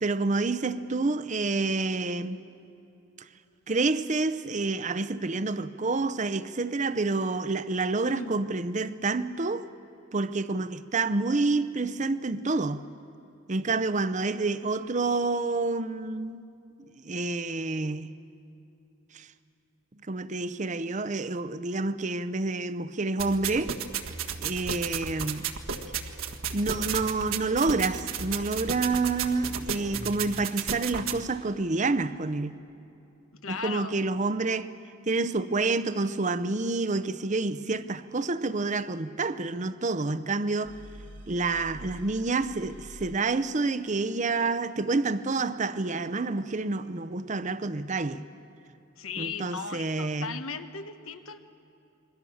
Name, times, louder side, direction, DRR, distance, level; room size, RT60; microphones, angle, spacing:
voice 1, 0.0-2.4 3.7-9.7 10.1-12.8 13.5-16.4 16.8-18.1 19.1-19.3 20.1-23.8 24.4-25.5 26.5-32.6 33.5-34.7 35.1-40.8 41.3-48.2 49.2-50.4, right 3 dB, 35° right, 0.7 m, -28 dB
voice 2, 8.0-8.4 33.4-34.0 49.0-51.4, left 5 dB, 85° left, 1.2 m, -37 dB
sound 1, 23.2-31.2, right 7 dB, 85° right, 1.6 m, -33 dB
sound 2, 40.6-44.2, right 1 dB, 60° right, 1.5 m, -48 dB
28.0 x 22.5 x 7.2 m
head